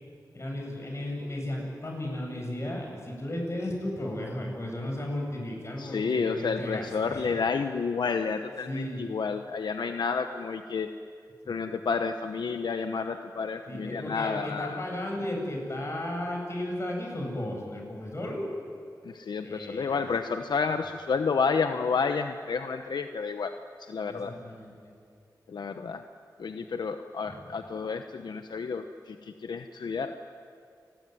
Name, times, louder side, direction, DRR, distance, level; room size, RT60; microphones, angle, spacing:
voice 1, 0.3-7.3 8.6-9.1 11.4-11.6 13.7-18.5 19.4-20.0 24.1-24.9 27.3-27.5, left 1 dB, 40° left, 1 dB, 7.9 m, -35 dB
voice 2, 5.8-10.9 11.5-14.8 19.1-23.5 23.8-24.3 25.5-26.0 26.4-30.2, left 5 dB, 80° left, 7 dB, 1.0 m, -30 dB
29.0 x 20.5 x 9.6 m, 2.3 s
wide cardioid pair, 85°, 7 cm